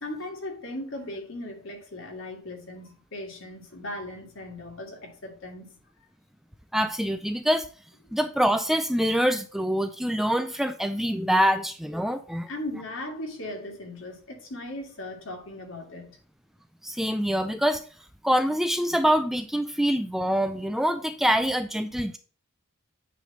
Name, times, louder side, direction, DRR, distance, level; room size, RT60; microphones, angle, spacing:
voice 1, 0.0-5.7 8.1-8.2 12.5-16.2, left 1 dB, 65° left, 2.0 m, -38 dB
voice 2, 6.7-7.7 8.1-12.5 16.8-17.8 18.2-22.2, equal, ahead, 0.3 m, -25 dB
9.3 x 3.4 x 5.2 m
head